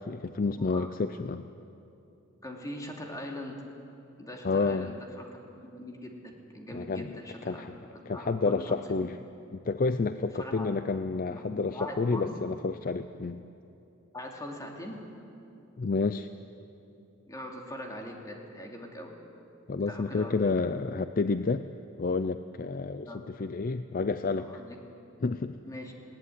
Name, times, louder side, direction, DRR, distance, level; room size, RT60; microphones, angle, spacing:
voice 1, 0.0-1.4 4.4-4.9 6.7-7.8 8.1-9.2 9.5-13.4 15.8-16.3 19.7-21.6 22.0-24.6 25.2-25.6, left 4 dB, 45° left, 11 dB, 0.5 m, -30 dB
voice 2, 0.6-0.9 2.4-3.6 4.2-5.2 5.7-7.8 8.1-8.7 10.4-10.8 11.3-12.3 14.1-15.0 17.3-19.1 19.9-20.3 20.7-20.9 23.1-23.2 24.4-24.8 25.6-25.9, left 1 dB, 15° left, 1 dB, 2.7 m, -41 dB
19.5 x 17.5 x 9.5 m, 2.9 s
head